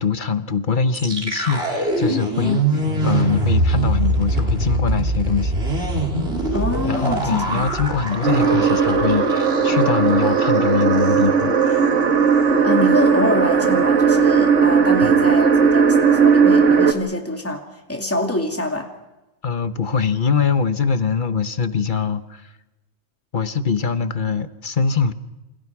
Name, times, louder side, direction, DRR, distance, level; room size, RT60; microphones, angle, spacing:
voice 1, 0.0-5.5 6.9-11.8 15.0-15.2 19.4-22.5 23.3-25.1, left 5 dB, 45° left, 11 dB, 1.2 m, -23 dB
sound 1, 0.9-10.0 10.3-10.4 10.8-11.2, right 2 dB, 55° right, 3.5 m, -23 dB
voice 2, 6.5-7.6 12.6-18.9, left 1 dB, 10° left, 3 dB, 2.6 m, -25 dB
sound 2, 8.2-16.9, right 6 dB, 75° right, 1.9 m, -16 dB
28.0 x 27.5 x 4.8 m, 1.0 s
omnidirectional pair, 1.3 m